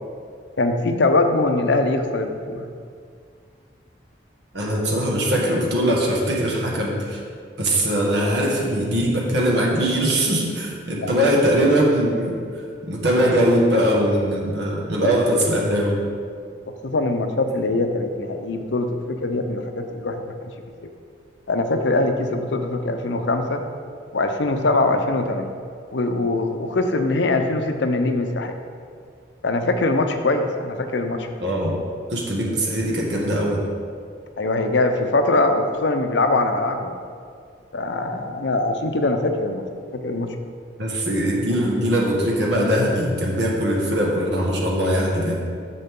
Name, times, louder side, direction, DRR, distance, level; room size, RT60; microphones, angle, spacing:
voice 1, 0.6-2.7 11.0-11.1 16.7-20.5 21.5-23.7 24.1-25.5 25.9-28.6 29.4-31.3 34.4-36.9 37.7-39.6 39.9-40.4, left 2 dB, 75° left, 6 dB, 0.7 m, -22 dB
voice 2, 4.5-7.2 7.6-12.4 12.8-16.0 31.4-31.8 32.1-33.6 40.8-45.5, equal, 70° right, -3 dB, 1.6 m, -21 dB
9.5 x 6.8 x 3.7 m, 2.2 s
head